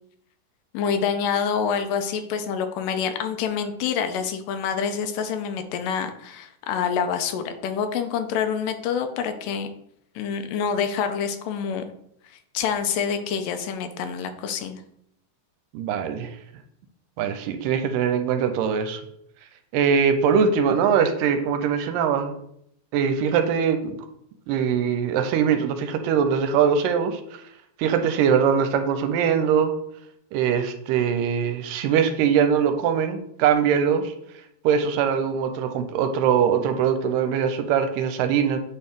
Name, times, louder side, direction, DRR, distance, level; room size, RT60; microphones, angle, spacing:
voice 1, 0.7-9.7 10.2-11.9 12.5-14.8, left 7 dB, 80° left, 7 dB, 2.3 m, -27 dB
voice 2, 15.7-16.3 17.2-19.0 19.7-22.4 22.9-24.0 24.5-27.2 27.8-29.7 30.3-34.1 34.6-38.6, right 7 dB, 85° right, 8 dB, 2.3 m, -22 dB
8.5 x 4.4 x 3.6 m, 0.73 s
omnidirectional pair, 3.9 m